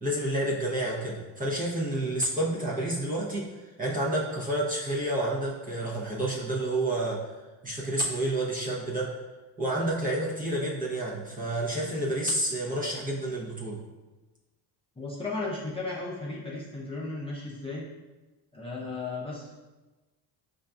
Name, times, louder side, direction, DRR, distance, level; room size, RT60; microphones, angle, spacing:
voice 1, 0.0-3.5 3.8-7.2 7.6-9.1 9.6-13.8, right 1 dB, 20° right, -5 dB, 0.7 m, -29 dB
voice 2, 15.0-17.8 18.5-19.5, left 3 dB, 15° left, -6 dB, 0.6 m, -35 dB
5.3 x 2.6 x 2.3 m, 1.2 s
cardioid pair, 105°, 42 cm